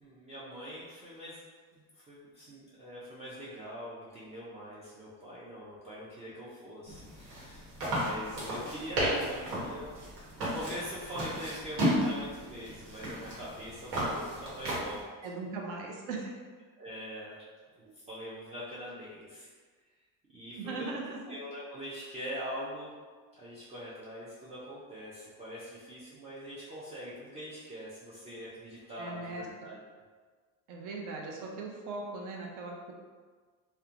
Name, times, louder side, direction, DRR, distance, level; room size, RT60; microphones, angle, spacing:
voice 1, 0.0-1.4 1.7-9.9 10.3-15.1 16.8-17.4 18.0-19.5 20.3-21.0 21.3-22.9 23.3-29.8, equal, 20° right, -9 dB, 0.3 m, -43 dB
sound 1, 6.9-15.0, equal, 80° right, 1.1 m, -34 dB
voice 2, 15.2-16.3 17.8-17.9 20.6-21.2 29.0-29.4 30.7-32.9, right 3 dB, 60° right, 0 dB, 0.6 m, -39 dB
2.9 x 2.1 x 2.4 m, 1.5 s
cardioid pair, 150°, 35 cm